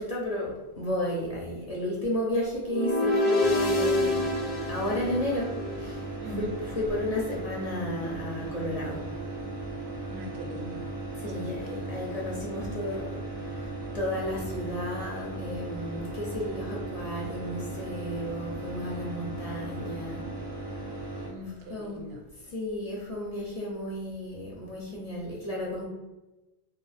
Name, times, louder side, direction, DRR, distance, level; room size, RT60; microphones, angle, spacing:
voice 1, 0.0-4.2 4.7-5.5 5.8-6.0 6.2-9.0 11.2-13.1 13.9-20.2 21.7-22.0 22.5-25.8, left 1 dB, 40° left, -4 dB, 0.6 m, -32 dB
sound 1, 2.6-5.9, left 2 dB, 80° left, 0.8 m, -27 dB
sound 2, 3.4-21.3, right 2 dB, 35° right, 0.4 m, -37 dB
voice 2, 6.2-6.5 10.1-10.9 11.3-12.1 21.3-22.2, right 1 dB, 80° right, 2 dB, 0.8 m, -41 dB
2.6 x 2.0 x 3.3 m, 1.0 s
omnidirectional pair, 1.1 m